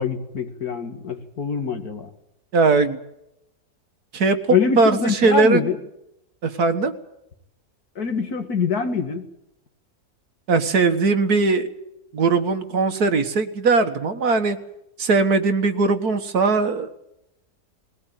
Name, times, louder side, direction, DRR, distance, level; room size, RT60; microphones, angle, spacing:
voice 1, 0.0-2.1 4.5-5.8 8.0-9.3, left 5 dB, 70° left, 7 dB, 2.5 m, -24 dB
voice 2, 2.5-3.0 4.1-4.4 4.8-5.7 6.4-7.0 10.5-11.7 12.1-14.6 15.0-16.9, right 4 dB, 70° right, 8 dB, 2.0 m, -19 dB
20.5 x 18.5 x 9.2 m, 0.83 s
omnidirectional pair, 1.7 m